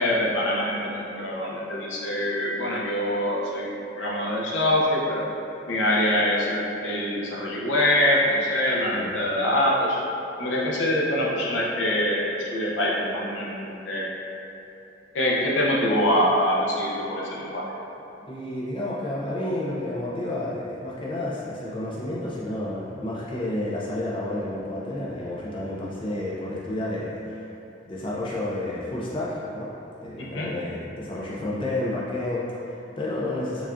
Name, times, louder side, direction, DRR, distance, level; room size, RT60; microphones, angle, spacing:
voice 1, 0.0-3.7 4.0-5.2 5.7-10.0 10.4-14.1 15.1-17.6 30.2-30.5, left 1 dB, 75° left, -4 dB, 0.6 m, -24 dB
voice 2, 9.0-9.3 18.3-27.5 27.9-29.7 30.0-33.7, left 1 dB, 25° left, -6 dB, 0.4 m, -30 dB
4.8 x 2.3 x 2.5 m, 3.0 s
head